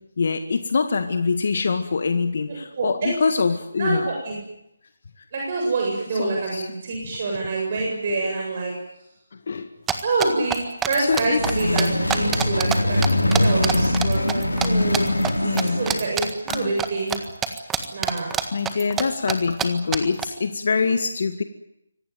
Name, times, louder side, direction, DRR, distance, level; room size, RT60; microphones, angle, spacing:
voice 1, 0.2-4.1 6.2-6.7 9.5-9.7 10.4-10.5 11.0-11.4 15.4-15.8 16.5-16.7 17.5-17.6 18.5-21.4, left 4 dB, 55° left, 8 dB, 1.9 m, -24 dB
voice 2, 2.5-3.1 3.8-4.4 5.3-8.7 10.0-10.6 10.9-13.0 13.3-17.2 17.9-18.3, right 3 dB, 40° right, 0 dB, 7.7 m, -26 dB
sound 1, 9.9-12.8 13.0-14.7 14.9-15.3 15.6-17.2 17.4-19.0 19.3-19.4 19.6-19.7 19.9-20.2, right 8 dB, 10° right, 1.7 m, -25 dB
sound 2, 10.9-16.2, left 1 dB, 90° left, 5.0 m, -22 dB
25.5 x 18.5 x 9.5 m, 0.83 s
figure-of-eight pair, 150°, 0 cm